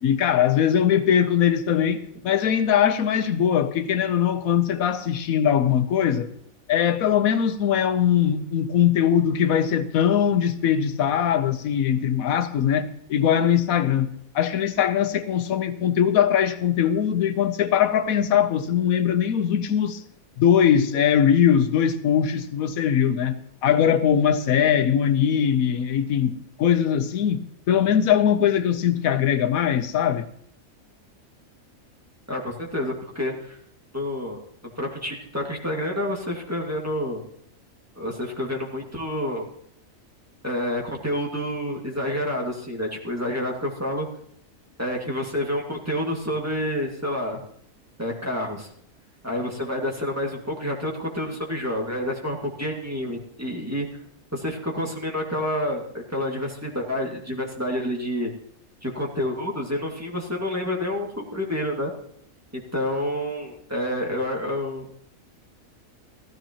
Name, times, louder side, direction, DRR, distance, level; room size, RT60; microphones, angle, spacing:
voice 1, 0.0-6.3 6.7-20.0 20.4-30.3, left 9 dB, 80° left, 1.2 m, -21 dB
voice 2, 32.3-33.6 33.9-37.2 38.0-39.5 40.4-44.1 44.8-47.4 48.0-48.7 49.2-53.9 54.3-58.3 58.8-61.9 62.5-64.9, left 1 dB, 10° right, 2.0 m, -28 dB
15.5 x 13.5 x 2.9 m
omnidirectional pair, 1.5 m